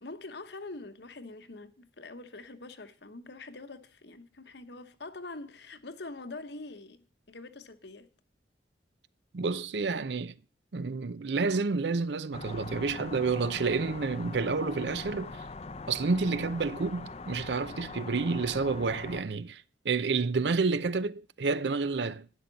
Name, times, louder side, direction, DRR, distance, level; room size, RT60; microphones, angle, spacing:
voice 1, 0.0-8.1, left 2 dB, 70° left, 1.1 m, -44 dB
voice 2, 9.3-10.3 10.7-15.4 15.9-22.3, right 4 dB, 70° right, 0.6 m, -29 dB
sound 1, 12.3-19.2, left 3 dB, 35° left, 0.6 m, -42 dB
12.0 x 10.5 x 4.1 m
head